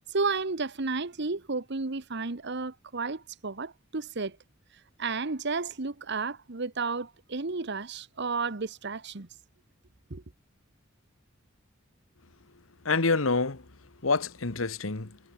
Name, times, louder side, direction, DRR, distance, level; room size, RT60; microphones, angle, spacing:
voice 1, 0.1-4.4 5.0-9.3 10.1-10.2, right 4 dB, 55° right, 1.2 m, -32 dB
voice 2, 12.8-13.7 14.0-15.2, left 3 dB, 80° left, 1.4 m, -27 dB
head